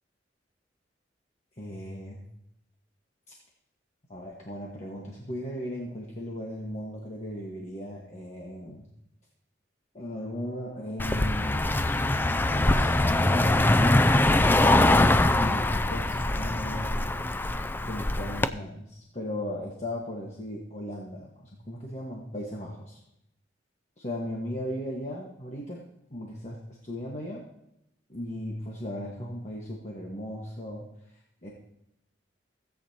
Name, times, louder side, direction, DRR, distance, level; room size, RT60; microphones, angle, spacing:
voice 1, 1.6-2.2 4.1-8.9 9.9-12.0 12.4-14.8 15.3-17.2 17.9-23.0 24.0-25.8 26.1-27.4 28.1-31.5, equal, 40° left, -3 dB, 1.4 m, -37 dB
Car passing by, 11.0-18.5, left 2 dB, 10° left, 0.3 m, -23 dB
16.5 x 8.5 x 2.9 m, 0.82 s
head